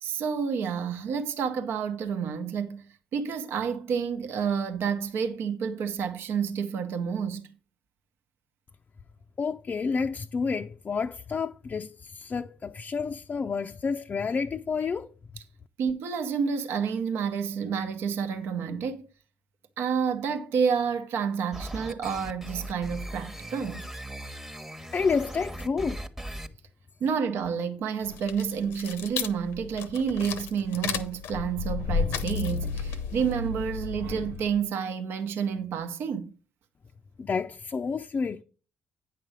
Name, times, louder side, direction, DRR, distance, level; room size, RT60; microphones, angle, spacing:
voice 1, 0.0-2.8 3.1-7.4 15.8-19.1 19.8-23.9 27.0-36.3, right 6 dB, 65° right, 0.9 m, -29 dB
voice 2, 9.4-15.1 24.9-26.0 37.2-38.4, left 5 dB, 40° left, 0.5 m, -29 dB
sound 1, 21.5-26.5, right 1 dB, 10° right, 1.0 m, -39 dB
sound 2, 28.0-34.6, left 5 dB, 70° left, 0.7 m, -33 dB
9.1 x 6.0 x 4.8 m
hypercardioid pair, 45°, 4 cm